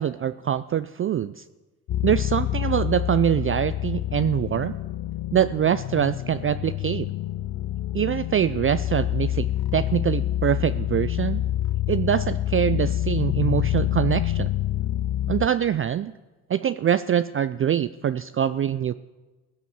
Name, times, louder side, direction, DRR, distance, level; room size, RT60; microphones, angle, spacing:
voice 1, 0.0-1.4 2.0-4.7 5.3-7.1 7.9-11.4 11.9-14.5 15.3-16.1 16.5-18.9, right 9 dB, 30° right, 13 dB, 0.4 m, -24 dB
sound 1, 1.9-15.5, left 13 dB, 40° left, 0.6 m, -27 dB
15.5 x 8.2 x 7.4 m, 1.2 s
hypercardioid pair, 65°, 46 cm